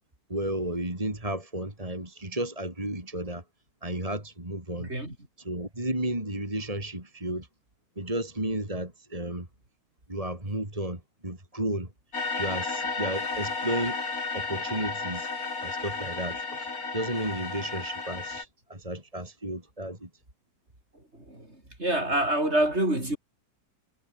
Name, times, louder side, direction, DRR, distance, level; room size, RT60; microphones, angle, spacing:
voice 1, 0.3-3.4 3.8-4.9 5.4-7.5 8.0-9.5 10.1-11.9 12.4-14.0 14.3-15.3 15.6-20.1, right 1 dB, 20° right, 4.8 m, -33 dB
voice 2, 4.8-5.2 21.1-23.2, right 1 dB, 35° right, 7.2 m, -27 dB
sound 1, 12.1-18.4, left 4 dB, 50° left, 3.6 m, -33 dB
omnidirectional pair, 2.0 m